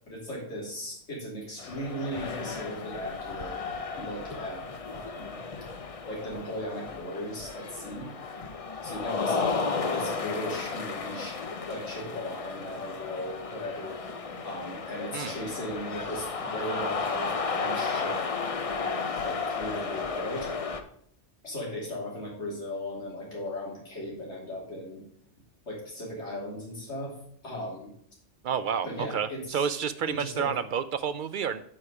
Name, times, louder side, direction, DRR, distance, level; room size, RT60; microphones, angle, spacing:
voice 1, 0.1-3.6 3.9-5.4 6.1-8.1 8.8-9.6 9.9-11.4 11.7-14.0 14.4-18.2 18.7-20.5 21.4-25.0 25.7-27.1 27.4-27.9 28.8-29.7 30.1-30.5, equal, 75° left, -4 dB, 3.2 m, -37 dB
sound 1, 1.6-20.8, left 4 dB, 35° left, 0.6 m, -34 dB
voice 2, 28.4-31.6, right 7 dB, 60° right, 12 dB, 0.6 m, -30 dB
8.9 x 5.1 x 4.9 m, 0.65 s
omnidirectional pair, 1.2 m